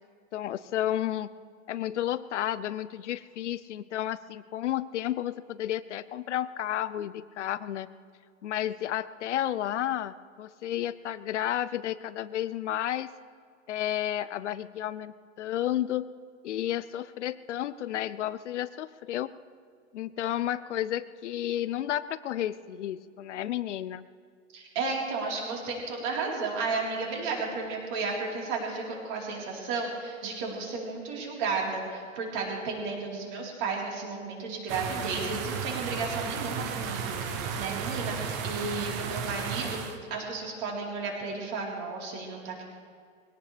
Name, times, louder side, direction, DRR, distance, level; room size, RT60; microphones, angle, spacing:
voice 1, 0.3-1.3 1.7-7.9 8.4-13.1 13.7-16.1 16.4-19.3 19.9-24.1, left 12 dB, 65° left, 15 dB, 0.7 m, -32 dB
voice 2, 24.5-39.8 40.1-42.6, right 4 dB, 35° right, -2 dB, 4.1 m, -33 dB
sound 1, 34.7-40.0, right 6 dB, 15° right, 0.4 m, -34 dB
22.5 x 17.5 x 3.4 m, 2.2 s
hypercardioid pair, 160°, 38 cm